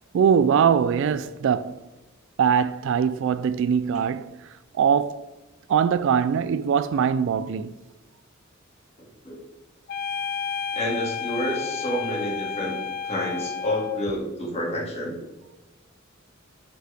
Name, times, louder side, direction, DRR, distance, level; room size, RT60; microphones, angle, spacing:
voice 1, 0.1-1.9 2.4-5.3 5.7-7.7, right 7 dB, 65° right, 0.3 m, -22 dB
sound 1, 9.9-14.1, left 6 dB, 45° left, 0.4 m, -31 dB
voice 2, 10.7-12.8 13.0-15.2, left 1 dB, 30° left, 2.3 m, -29 dB
7.6 x 5.5 x 3.4 m
head